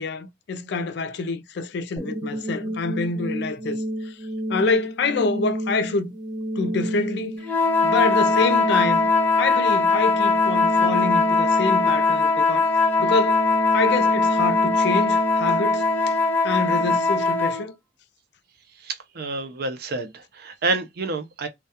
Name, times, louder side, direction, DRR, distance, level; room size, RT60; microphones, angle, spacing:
voice 1, 0.0-4.2 4.5-6.1 6.6-7.4 7.8-9.1 9.4-12.7 13.0-16.2 16.4-17.7, left 3 dB, 65° left, 0.4 m, -26 dB
sound 1, 2.0-17.0, equal, 25° right, 0.9 m, -30 dB
sound 2, 7.4-17.6, left 3 dB, 10° left, 0.6 m, -20 dB
voice 2, 18.8-21.5, right 3 dB, 60° right, 0.5 m, -28 dB
2.3 x 2.2 x 2.7 m
head